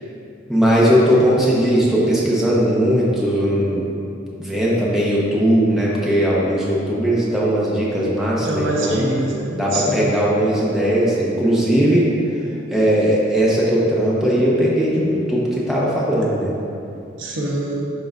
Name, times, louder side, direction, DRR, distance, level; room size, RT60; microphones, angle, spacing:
voice 1, 0.5-3.9 4.4-9.1 9.5-12.1 12.7-16.5, equal, ahead, -7 dB, 1.0 m, -18 dB
voice 2, 8.4-10.1 17.2-17.8, right 1 dB, 75° right, -2 dB, 1.0 m, -24 dB
11.5 x 3.8 x 2.6 m, 2.7 s
head